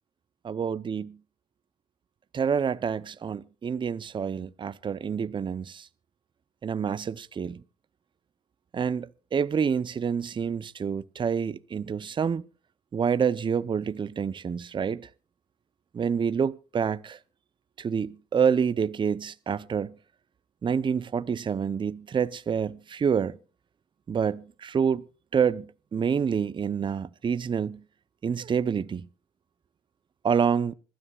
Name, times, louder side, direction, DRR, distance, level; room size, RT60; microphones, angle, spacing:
voice 1, 0.5-1.1 2.3-5.9 6.6-7.6 8.7-12.5 12.9-15.1 15.9-17.2 17.8-19.9 20.6-23.4 24.1-25.0 25.3-27.8 28.2-29.1 30.2-30.7, right 7 dB, 30° right, 0.6 m, -27 dB
26.0 x 13.0 x 2.3 m
cardioid pair, 110°, 17 cm